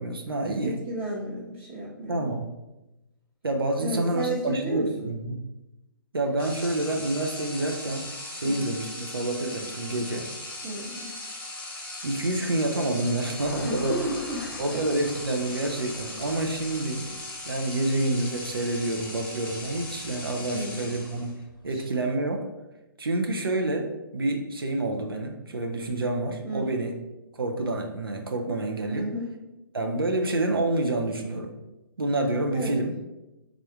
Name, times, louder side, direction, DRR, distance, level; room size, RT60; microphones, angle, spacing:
voice 1, 0.0-0.8 2.1-2.5 3.4-5.4 6.1-10.3 12.0-14.0 14.6-17.1 17.5-21.4 21.6-22.4 23.0-26.9 27.3-29.1 29.7-31.5 32.0-32.9, right 2 dB, 75° right, 2 dB, 0.6 m, -28 dB
voice 2, 0.6-2.3 3.8-5.1 8.4-8.7 10.6-11.2 13.6-14.8 20.5-20.8 21.7-21.8 26.4-26.9 28.9-29.3 32.5-32.8, right 1 dB, 25° right, -7 dB, 0.9 m, -33 dB
sound 1, 6.4-21.4, left 2 dB, 10° left, 0.7 m, -39 dB
sound 2, 13.4-21.7, left 2 dB, 60° left, 0.7 m, -46 dB
3.6 x 2.4 x 4.5 m, 0.99 s
figure-of-eight pair, 130°, 12 cm